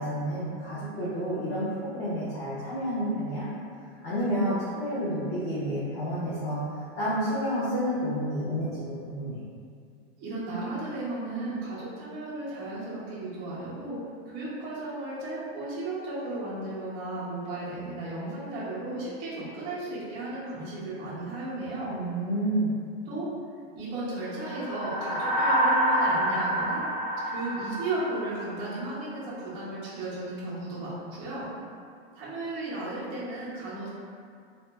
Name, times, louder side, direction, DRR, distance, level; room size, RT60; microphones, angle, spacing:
voice 1, 0.0-3.5 4.0-9.4 21.9-22.8, equal, 30° left, -12 dB, 0.7 m, -30 dB
voice 2, 10.2-14.0 14.3-21.9 23.1-23.3 23.8-26.8 27.3-31.5 32.2-33.9, right 2 dB, 15° right, -10 dB, 0.3 m, -35 dB
sound 1, 24.4-28.9, right 1 dB, 80° left, 1.0 m, -27 dB
2.9 x 2.1 x 3.2 m, 2.3 s
supercardioid pair, 175°, 31 cm